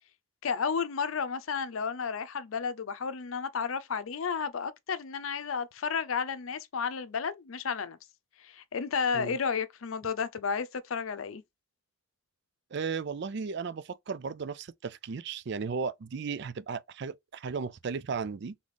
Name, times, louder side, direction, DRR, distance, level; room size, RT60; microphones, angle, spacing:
voice 1, 0.4-8.0 8.4-11.4, left 6 dB, 90° left, 0.6 m, -32 dB
voice 2, 12.7-18.6, right 5 dB, 60° right, 0.4 m, -35 dB
4.1 x 3.5 x 3.4 m
head